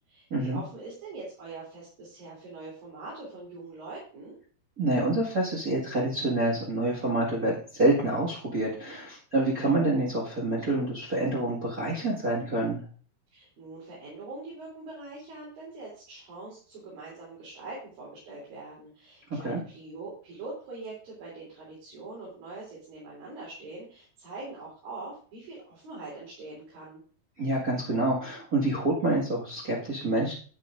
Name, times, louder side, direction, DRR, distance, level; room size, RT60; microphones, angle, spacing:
voice 1, 0.1-4.3 13.3-27.0, right 3 dB, 60° right, -6 dB, 4.9 m, -43 dB
voice 2, 4.8-12.8 19.3-19.6 27.4-30.3, right 2 dB, 35° right, -5 dB, 1.5 m, -27 dB
10.5 x 10.0 x 2.6 m, 0.43 s
omnidirectional pair, 4.6 m